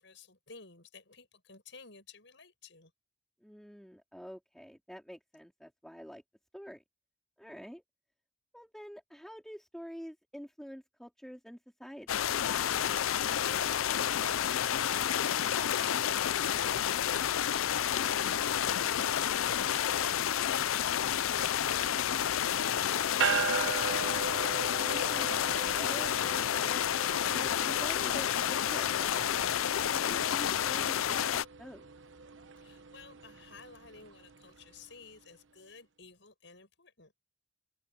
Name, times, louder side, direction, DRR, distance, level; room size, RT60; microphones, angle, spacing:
voice 1, 0.0-2.9 13.0-24.3 32.6-37.1, left 4 dB, 65° left, 7.4 m, -53 dB
voice 2, 3.4-6.2 6.5-6.8 7.4-7.8 8.5-12.1 24.7-26.7 27.3-31.9, equal, ahead, 3.2 m, -47 dB
sound 1, 12.1-31.4, left 10 dB, 90° left, 0.5 m, -30 dB
sound 2, 23.2-34.8, right 6 dB, 70° right, 1.0 m, -39 dB
head